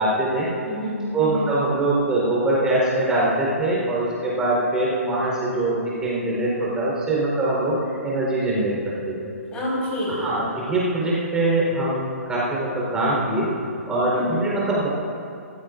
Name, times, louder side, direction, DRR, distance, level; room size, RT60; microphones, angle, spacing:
voice 1, 0.0-0.5 1.1-7.8 8.0-9.1 10.1-13.5 13.9-14.9, right 2 dB, 10° right, -7 dB, 4.1 m, -23 dB
voice 2, 0.6-1.5 9.5-10.5 14.1-14.5, left 1 dB, 15° left, -6 dB, 4.7 m, -28 dB
26.5 x 15.5 x 2.6 m, 2.4 s
figure-of-eight pair, 125°, 8 cm